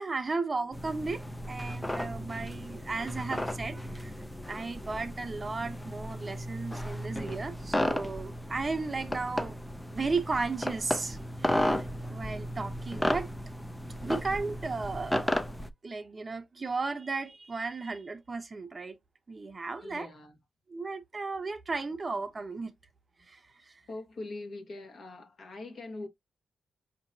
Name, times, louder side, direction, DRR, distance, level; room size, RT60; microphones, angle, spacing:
voice 1, 0.0-4.2 4.5-9.5 9.9-13.3 14.0-15.3 15.8-19.0 19.3-20.1 20.7-22.7 23.3-23.8, right 3 dB, 25° right, 0.7 m, -35 dB
sound 1, 0.7-15.7, left 1 dB, 5° left, 0.4 m, -34 dB
voice 2, 19.8-20.4 23.9-26.1, left 2 dB, 50° left, 1.2 m, -42 dB
5.2 x 2.9 x 2.6 m
cardioid pair, 130°, 0 cm